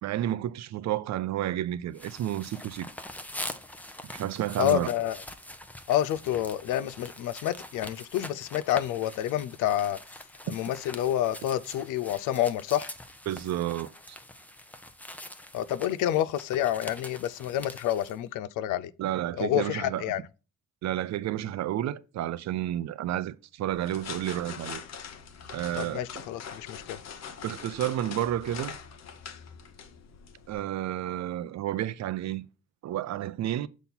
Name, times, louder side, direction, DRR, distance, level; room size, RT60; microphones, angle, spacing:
voice 1, 0.0-2.9 4.1-4.9 13.3-14.2 19.0-20.0 20.8-24.8 25.5-26.0 27.4-28.8 30.5-32.4 32.8-33.7, right 12 dB, 65° right, 0.5 m, -31 dB
sound 1, 1.9-18.2, left 1 dB, 5° left, 0.7 m, -44 dB
voice 2, 4.6-5.2 5.9-10.0 10.5-12.9 15.5-18.9 19.4-20.2 25.7-27.0, left 12 dB, 90° left, 0.5 m, -28 dB
sound 2, 23.7-30.5, left 7 dB, 60° left, 0.9 m, -43 dB
7.1 x 4.0 x 4.2 m
cardioid pair, 90°, 30 cm